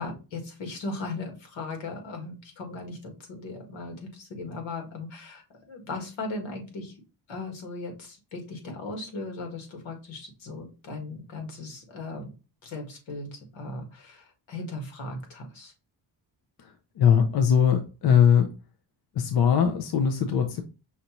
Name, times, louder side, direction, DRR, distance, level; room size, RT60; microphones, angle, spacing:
voice 1, 0.0-5.4 5.7-6.9 7.3-12.3 12.6-15.7, left 3 dB, 80° left, 1.7 m, -37 dB
voice 2, 17.0-18.5 19.2-20.6, left 8 dB, 55° left, 0.5 m, -21 dB
5.6 x 2.6 x 2.9 m
wide cardioid pair, 160°, 46 cm